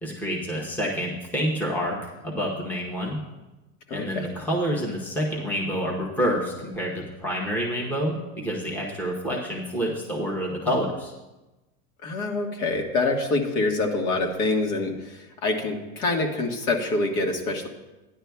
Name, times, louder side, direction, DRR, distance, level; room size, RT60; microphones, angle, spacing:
voice 1, 0.0-2.0 2.2-3.2 3.9-11.1, equal, 5° left, -3 dB, 0.8 m, -28 dB
voice 2, 3.9-4.3 12.0-17.7, left 2 dB, 75° left, 2 dB, 1.7 m, -26 dB
14.0 x 10.0 x 2.3 m, 1.1 s
supercardioid pair, 170°, 44 cm